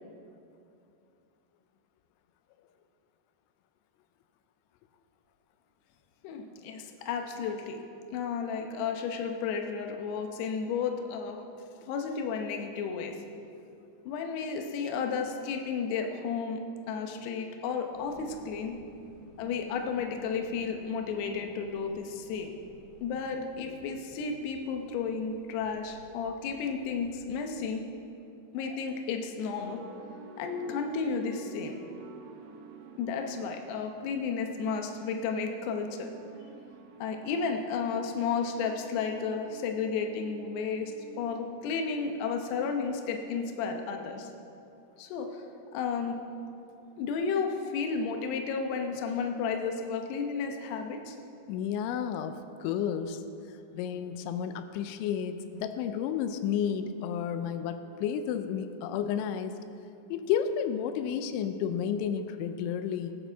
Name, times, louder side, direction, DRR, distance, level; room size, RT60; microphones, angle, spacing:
voice 1, 6.2-7.8 8.1-11.4 11.8-13.2 14.1-16.6 16.9-18.8 19.4-22.5 23.0-27.8 28.5-29.8 30.4-31.8 33.0-36.1 37.0-44.3 45.0-45.4 45.7-46.2 47.0-51.2, left 5 dB, 75° left, 4 dB, 2.8 m, -33 dB
sound 1, 17.9-27.1, left 1 dB, 25° left, 3.0 m, -53 dB
sound 2, 29.6-42.9, right 4 dB, 80° right, 2.0 m, -51 dB
voice 2, 51.5-53.2 53.7-59.5 60.1-63.2, left 8 dB, 90° left, 9 dB, 3.0 m, -31 dB
18.5 x 10.5 x 3.5 m, 2.6 s
omnidirectional pair, 5.3 m